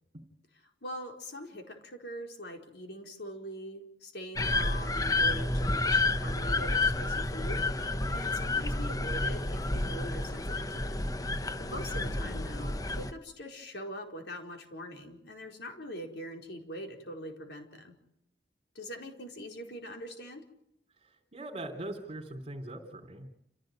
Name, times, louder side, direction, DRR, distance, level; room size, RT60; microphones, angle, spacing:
voice 1, 0.6-18.0 18.7-20.4, equal, 70° left, 3 dB, 4.8 m, -43 dB
sound 1, 4.4-13.1, left 2 dB, 20° left, 0.9 m, -30 dB
voice 2, 11.9-12.4 21.0-23.3, right 1 dB, 35° right, 0 dB, 3.8 m, -42 dB
29.0 x 16.5 x 9.3 m, 0.78 s
head